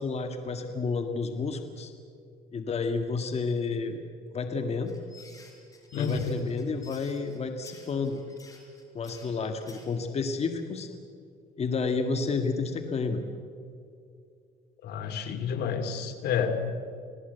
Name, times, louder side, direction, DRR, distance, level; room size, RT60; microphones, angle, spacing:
voice 1, 0.0-1.9 2.5-4.0 4.3-4.9 5.9-8.2 8.9-10.9 11.6-13.2, left 4 dB, 40° left, 6 dB, 1.9 m, -30 dB
sound 1, 4.9-9.9, left 3 dB, 20° left, 5.2 m, -53 dB
voice 2, 14.8-16.6, left 6 dB, 75° left, 6 dB, 2.7 m, -29 dB
27.0 x 17.5 x 8.1 m, 2.4 s
cardioid pair, 110°, 17 cm